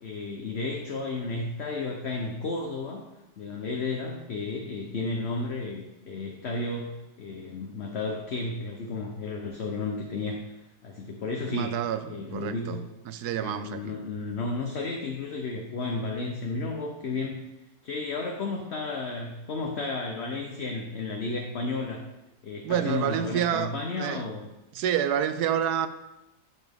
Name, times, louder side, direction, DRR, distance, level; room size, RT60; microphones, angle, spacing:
voice 1, 0.0-3.1 3.4-10.4 10.8-11.7 12.0-12.8 13.4-17.4 17.8-22.0 22.4-24.4, left 3 dB, 50° left, 1 dB, 0.9 m, -33 dB
voice 2, 11.5-12.8 13.1-14.0 22.6-23.7 24.0-24.2 24.7-25.9, right 9 dB, 75° right, 12 dB, 1.0 m, -28 dB
11.5 x 5.8 x 3.6 m, 0.97 s
omnidirectional pair, 1.8 m